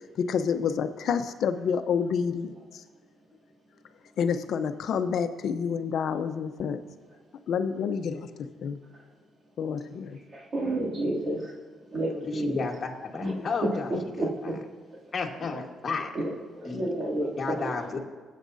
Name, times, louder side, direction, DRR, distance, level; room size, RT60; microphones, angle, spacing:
voice 1, 0.2-2.8 4.2-6.8 7.5-8.8 9.6-10.2, left 6 dB, 70° left, 9 dB, 0.8 m, -28 dB
voice 2, 10.3-11.5 11.9-12.6 13.2-13.3 13.6-13.8 14.2-14.5 16.1-17.7, right 1 dB, 45° right, -4 dB, 2.7 m, -30 dB
voice 3, 12.1-13.9 14.4-14.6 15.1-16.1 16.6-16.9 17.4-18.0, left 4 dB, 40° left, 0 dB, 1.6 m, -32 dB
20.5 x 8.5 x 2.7 m, 1.5 s
cardioid pair, 90°, 0 cm